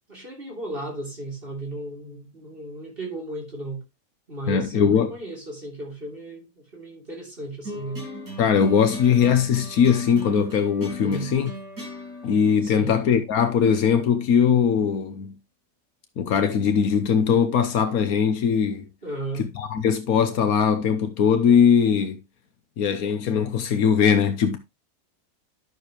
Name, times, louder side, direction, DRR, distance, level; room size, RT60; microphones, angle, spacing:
voice 1, 0.1-3.8 4.3-8.0 11.0-11.3 12.6-12.9 19.0-19.4, right 2 dB, 40° right, 3.4 m, -35 dB
voice 2, 4.5-5.1 8.4-11.5 12.2-15.3 16.2-18.9 19.4-22.2 22.8-24.6, left 7 dB, 80° left, 1.4 m, -20 dB
sound 1, 7.6-14.1, equal, 85° right, 7.1 m, -39 dB
11.5 x 6.7 x 3.0 m
omnidirectional pair, 1.5 m